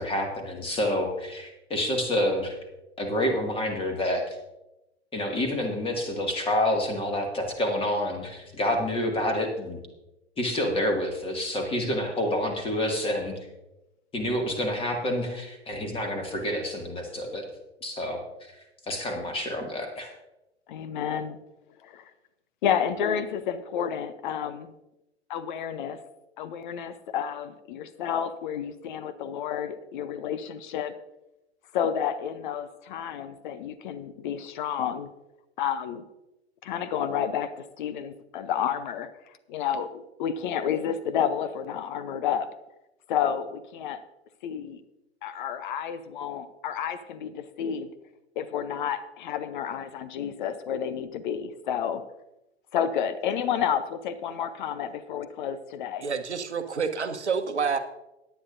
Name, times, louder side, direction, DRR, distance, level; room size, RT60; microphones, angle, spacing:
voice 1, 0.0-2.5 3.0-4.3 5.1-9.8 10.4-13.3 14.1-17.4 17.8-18.2 18.9-20.1, left 1 dB, 15° left, 3 dB, 2.1 m, -28 dB
voice 2, 20.7-21.4 21.8-22.0 22.6-24.7 25.3-26.0 26.4-30.9 31.7-35.1 35.6-36.0 36.6-39.1 39.5-42.5 43.1-44.0 44.4-44.8 45.2-47.9 48.4-52.0 52.7-56.0, left 8 dB, 45° left, 13 dB, 0.8 m, -30 dB
voice 3, 56.0-57.8, right 5 dB, 80° right, 9 dB, 1.1 m, -28 dB
17.0 x 10.5 x 2.6 m, 0.93 s
figure-of-eight pair, 95°, 34 cm